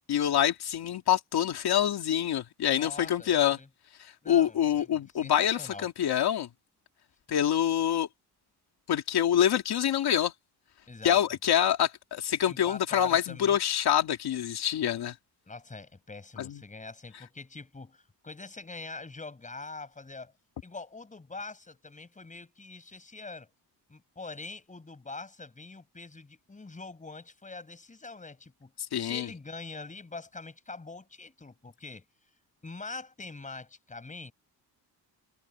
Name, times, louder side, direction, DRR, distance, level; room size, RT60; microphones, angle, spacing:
voice 1, 0.1-3.6 4.0-6.5 7.3-8.1 8.9-10.3 11.0-15.1 16.4-16.6 28.9-29.3, left 10 dB, 70° left, 2.5 m, -26 dB
voice 2, 2.7-3.7 4.2-5.9 10.9-11.2 12.5-13.6 15.4-20.3 20.6-23.5 23.9-32.0 32.6-34.3, left 3 dB, 20° left, 5.1 m, -44 dB
cardioid pair, 155°, 40 cm